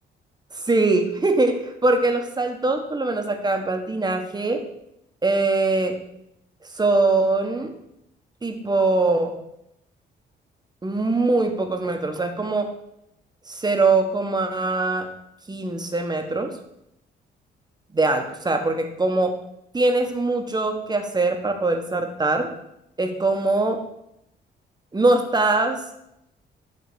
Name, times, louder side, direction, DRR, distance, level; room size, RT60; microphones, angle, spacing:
voice 1, 0.5-4.6 5.2-6.0 6.7-7.7 8.4-9.3 10.8-12.7 13.5-15.1 15.5-16.5 17.9-19.3 19.7-22.5 23.0-23.8 24.9-25.8, right 3 dB, 20° right, 5 dB, 1.1 m, -22 dB
9.4 x 3.6 x 6.2 m, 0.81 s
cardioid pair, 90°, 20 cm